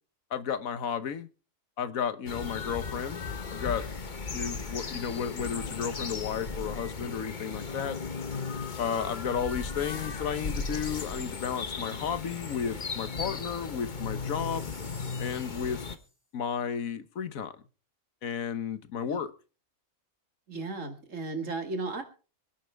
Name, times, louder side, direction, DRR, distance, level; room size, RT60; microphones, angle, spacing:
voice 1, 0.3-1.3 1.8-3.2 3.5-3.8 4.3-8.0 8.8-14.7 15.2-15.8 16.3-17.5 18.2-19.3, left 7 dB, 80° left, 1.5 m, -33 dB
sound 1, 2.3-16.0, left 4 dB, 35° left, 1.1 m, -36 dB
Chime, 14.1-16.1, left 1 dB, 60° left, 5.1 m, -52 dB
voice 2, 20.5-22.0, right 3 dB, 65° right, 2.5 m, -35 dB
25.0 x 10.0 x 3.4 m
omnidirectional pair, 1.4 m